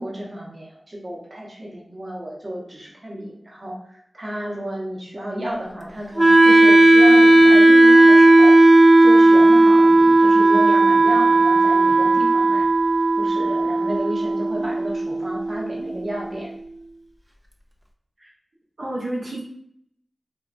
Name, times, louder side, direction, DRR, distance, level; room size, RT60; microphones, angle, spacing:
voice 1, 0.0-8.5 9.0-12.7 13.2-16.5, equal, 50° right, -3 dB, 0.9 m, -32 dB
Wind instrument woodwind instrument, 6.2-16.2, right 2 dB, 20° right, 0.4 m, -14 dB
voice 2, 18.8-19.4, right 1 dB, 85° right, -6 dB, 0.8 m, -30 dB
3.5 x 2.2 x 2.5 m, 0.68 s
cardioid pair, 45°, 0 cm